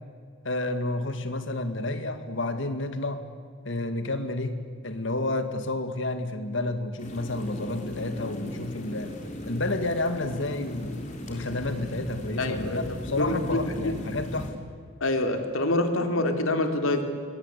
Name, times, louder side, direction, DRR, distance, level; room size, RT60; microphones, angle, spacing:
voice 1, 0.4-3.2 3.7-9.1 9.4-11.0 11.3-14.5, left 2 dB, 65° left, 8 dB, 2.2 m, -30 dB
sound 1, 7.0-14.5, equal, 35° left, 3.8 m, -38 dB
voice 2, 12.4-14.0 15.0-17.0, left 2 dB, 85° left, 6 dB, 2.8 m, -26 dB
26.0 x 22.0 x 8.3 m, 2.1 s
head